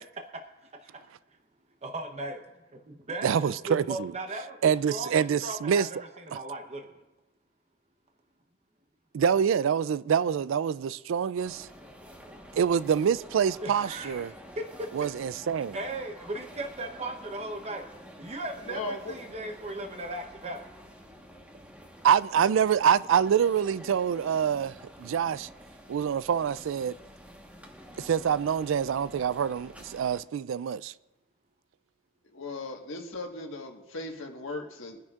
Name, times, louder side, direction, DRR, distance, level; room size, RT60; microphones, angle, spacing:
voice 1, 1.8-2.4 2.7-6.9 13.6-15.1 15.7-17.9 18.2-20.7, right 2 dB, 35° right, 0.8 m, -37 dB
voice 2, 3.2-4.1 4.6-5.9 9.1-11.7 12.5-14.3 14.9-15.8 22.0-25.5 25.9-27.0 28.0-30.9, right 8 dB, 65° right, 0.3 m, -26 dB
sound 1, 11.4-30.2, equal, 5° right, 1.2 m, -49 dB
voice 3, 18.6-19.1 32.3-35.0, left 2 dB, 70° left, 1.5 m, -37 dB
23.0 x 10.0 x 2.4 m
head